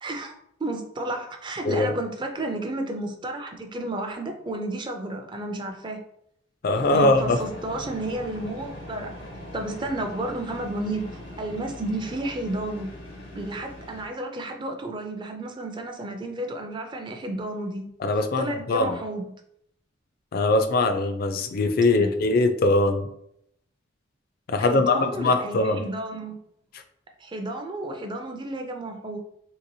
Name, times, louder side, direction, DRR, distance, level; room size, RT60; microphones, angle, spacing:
voice 1, 0.0-6.0 6.9-9.1 9.5-12.9 13.3-19.3 22.0-22.1 24.6-26.4 27.2-29.2, right 1 dB, 25° right, 4 dB, 0.4 m, -32 dB
voice 2, 6.6-7.4 18.0-19.0 20.3-23.1 24.5-25.8, left 2 dB, 50° left, 7 dB, 0.4 m, -22 dB
sound 1, 6.7-14.1, left 1 dB, 90° left, 1.2 m, -40 dB
3.3 x 2.8 x 2.6 m, 0.74 s
head